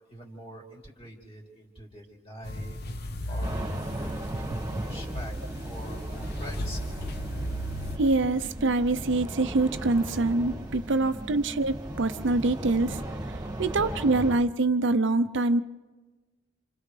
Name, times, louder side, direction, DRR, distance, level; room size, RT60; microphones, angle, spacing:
voice 1, 0.1-5.4 5.6-7.0 11.1-11.4 13.4-13.8 14.1-14.3, right 1 dB, 30° left, -1 dB, 3.6 m, -43 dB
sound 1, 2.4-8.0, equal, 55° left, 0.9 m, -36 dB
sound 2, 3.4-14.4, right 1 dB, 20° right, 2.0 m, -37 dB
voice 2, 8.0-13.0 13.3-15.6, right 2 dB, 65° right, 11 dB, 0.6 m, -25 dB
29.0 x 27.0 x 3.3 m, 1.3 s
head